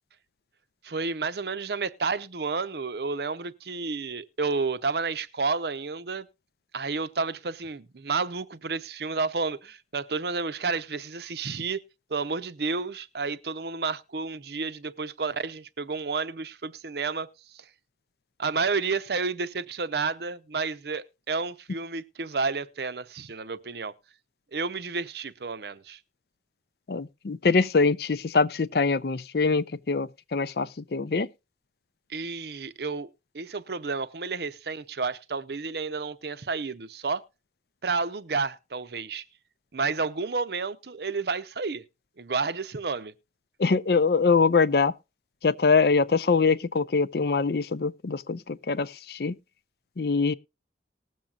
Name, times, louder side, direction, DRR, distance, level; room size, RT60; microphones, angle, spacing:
voice 1, 0.8-6.3 6.7-11.8 12.1-17.3 17.5-17.6 18.4-23.9 24.5-26.0 32.1-33.1 33.3-37.2 37.8-39.2 39.7-41.8 42.2-43.1, right 4 dB, 65° right, 0.7 m, -31 dB
voice 2, 26.9-31.3 43.6-44.9 45.4-49.3 50.0-50.3, left 4 dB, 60° left, 0.5 m, -23 dB
19.5 x 7.3 x 2.4 m
head